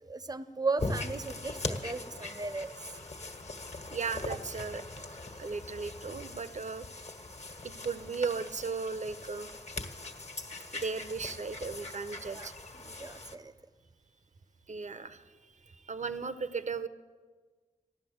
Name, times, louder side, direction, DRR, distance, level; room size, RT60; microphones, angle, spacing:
voice 1, 0.0-2.7 12.3-12.5 12.8-13.5, right 3 dB, 25° right, 12 dB, 0.7 m, -36 dB
sound 1, 0.8-13.4, left 2 dB, 50° left, 1.5 m, -41 dB
voice 2, 3.9-4.8 5.4-6.9 7.6-9.5 10.7-12.5 14.7-16.9, right 4 dB, 55° right, 12 dB, 0.8 m, -36 dB
15.0 x 11.0 x 7.9 m, 1.4 s
wide cardioid pair, 70°, 14 cm